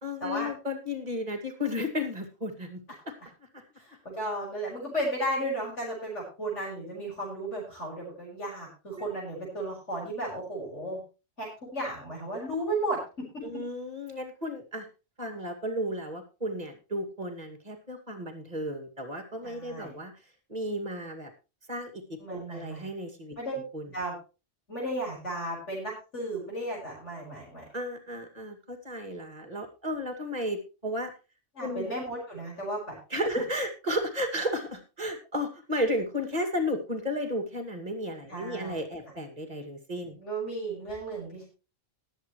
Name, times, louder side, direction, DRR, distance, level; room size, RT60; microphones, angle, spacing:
voice 1, 0.0-3.1 3.4-3.6 9.0-9.1 13.4-14.9 15.2-20.1 20.5-21.3 21.7-23.4 23.7-23.9 27.7-31.1 31.6-31.9 33.1-40.2, left 1 dB, 35° right, 5 dB, 2.4 m, -33 dB
voice 2, 3.8-11.0 11.4-13.3 19.4-20.0 22.2-22.8 23.4-23.6 23.9-24.1 24.7-27.6 31.6-33.0 38.3-38.8 40.1-41.5, right 1 dB, 75° left, -5 dB, 5.7 m, -34 dB
19.5 x 8.2 x 3.1 m, 0.31 s
omnidirectional pair, 1.2 m